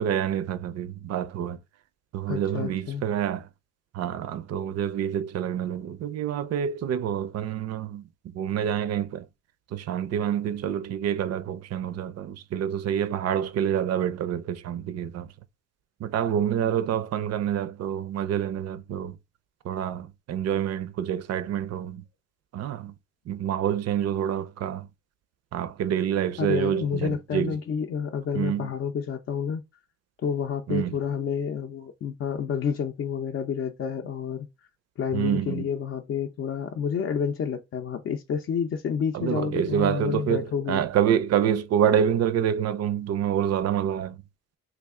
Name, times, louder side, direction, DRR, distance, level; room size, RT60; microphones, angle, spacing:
voice 1, 0.0-1.6 2.1-3.5 3.9-9.3 9.7-15.3 16.0-19.2 19.6-22.0 22.5-22.9 23.3-24.9 25.5-27.6 28.3-28.7 30.7-30.9 35.1-35.7 39.1-44.2, right 9 dB, 55° right, 0.5 m, -27 dB
voice 2, 2.3-3.0 26.4-29.6 30.2-34.5 35.0-40.8, left 7 dB, 45° left, 0.5 m, -29 dB
3.3 x 2.4 x 3.5 m
cardioid pair, 90°, 30 cm